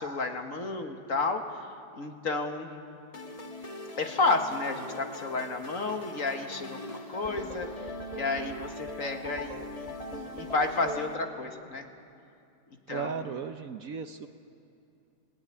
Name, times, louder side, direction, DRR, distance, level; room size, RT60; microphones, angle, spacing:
voice 1, 0.0-1.7 1.9-2.8 4.0-7.9 8.1-11.9 12.9-13.4, left 3 dB, 50° left, 5 dB, 1.9 m, -31 dB
sound 1, 3.1-11.1, left 1 dB, 20° left, 1.4 m, -41 dB
voice 2, 12.9-14.3, right 6 dB, 60° right, 8 dB, 1.1 m, -36 dB
29.5 x 17.5 x 9.8 m, 2.6 s
omnidirectional pair, 1.9 m